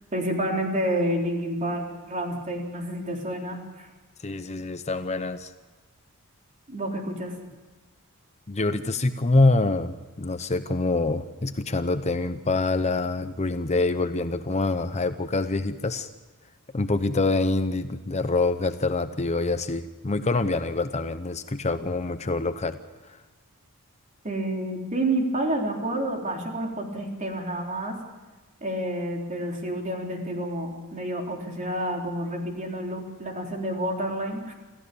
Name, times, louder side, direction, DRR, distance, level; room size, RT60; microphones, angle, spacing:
voice 1, 0.1-3.9 6.7-7.3 24.2-28.0 28.6-34.5, right 1 dB, 35° right, 1 dB, 3.8 m, -29 dB
voice 2, 4.2-5.5 8.5-16.1 16.7-22.8, left 2 dB, 30° left, 10 dB, 0.7 m, -25 dB
27.0 x 15.0 x 6.9 m, 1.3 s
head